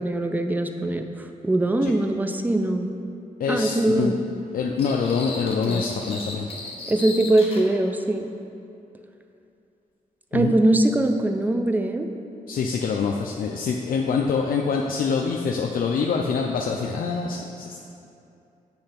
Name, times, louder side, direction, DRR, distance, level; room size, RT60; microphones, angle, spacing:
voice 1, 0.0-2.9 3.5-4.2 5.6-5.8 6.9-8.3 10.3-12.1, right 1 dB, 10° right, 6 dB, 0.4 m, -22 dB
voice 2, 3.4-4.1 4.5-6.5 10.3-10.5 12.5-17.8, left 5 dB, 75° left, 0 dB, 0.4 m, -25 dB
sound 1, 4.8-7.7, left 2 dB, 40° left, 1.0 m, -36 dB
8.7 x 3.2 x 5.7 m, 2.6 s
wide cardioid pair, 120°, 15 cm